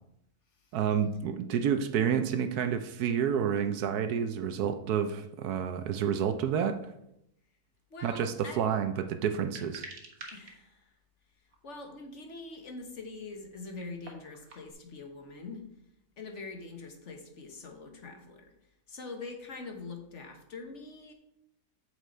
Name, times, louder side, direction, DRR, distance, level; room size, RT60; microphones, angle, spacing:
voice 1, 0.7-6.9 8.0-9.9, right 8 dB, 75° right, 1.1 m, -29 dB
voice 2, 7.9-8.7 10.3-10.9 11.6-15.6 16.2-18.5 18.9-21.1, left 3 dB, 50° left, 1.4 m, -44 dB
sound 1, 9.4-10.5 11.5-11.6 13.5-14.7, right 3 dB, 60° right, 1.7 m, -47 dB
8.0 x 6.6 x 4.3 m
omnidirectional pair, 1.7 m